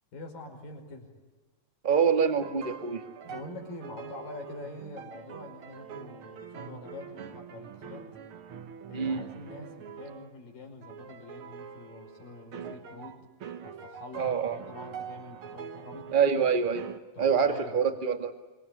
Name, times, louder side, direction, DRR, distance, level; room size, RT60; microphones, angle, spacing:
voice 1, 0.1-1.1 3.2-8.1 8.9-13.3 13.6-16.2 17.2-17.8, left 2 dB, 90° left, 3 dB, 7.0 m, -45 dB
voice 2, 1.8-3.0 8.9-9.2 14.1-14.6 16.1-16.9 17.2-18.3, right 6 dB, 20° right, 6 dB, 1.5 m, -25 dB
sound 1, 2.4-10.3 10.8-17.0, right 7 dB, 55° right, 1.7 m, -44 dB
26.5 x 25.0 x 8.8 m, 1.3 s
omnidirectional pair, 3.8 m